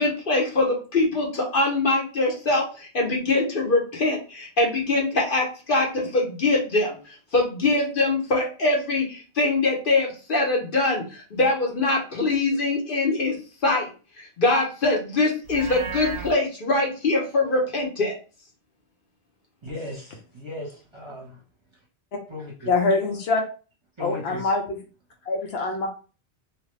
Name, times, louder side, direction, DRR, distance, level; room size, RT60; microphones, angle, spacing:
voice 1, 0.0-7.0 7.3-13.4 13.6-13.9 14.2-18.1, left 2 dB, 55° left, -1 dB, 1.0 m, -23 dB
Livestock farm animals working animals, 15.4-16.3, right 6 dB, 60° right, 0.7 m, -33 dB
voice 2, 19.6-21.4 22.3-22.7 24.0-24.5, left 1 dB, 30° right, -3 dB, 0.9 m, -37 dB
voice 3, 22.7-23.4 24.0-24.8 25.3-25.9, left 3 dB, 70° left, 3 dB, 0.9 m, -24 dB
2.8 x 2.4 x 3.2 m, 0.35 s
omnidirectional pair, 1.1 m